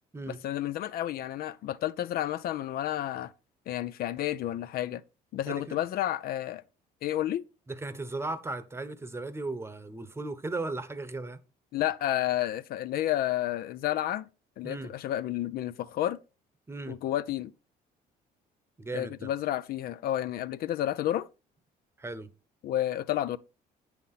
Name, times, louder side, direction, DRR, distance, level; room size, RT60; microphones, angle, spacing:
voice 1, 0.4-3.3 3.7-5.0 5.3-6.6 7.0-7.4 11.7-14.2 14.6-16.2 16.9-17.5 18.9-21.3 22.6-23.4, left 13 dB, 65° left, 0.4 m, -31 dB
voice 2, 5.5-5.8 7.7-11.4 14.6-14.9 16.7-16.9 18.8-19.3 22.0-22.3, right 2 dB, 15° right, 0.9 m, -36 dB
8.5 x 5.7 x 4.1 m
cardioid pair, 110°, 17 cm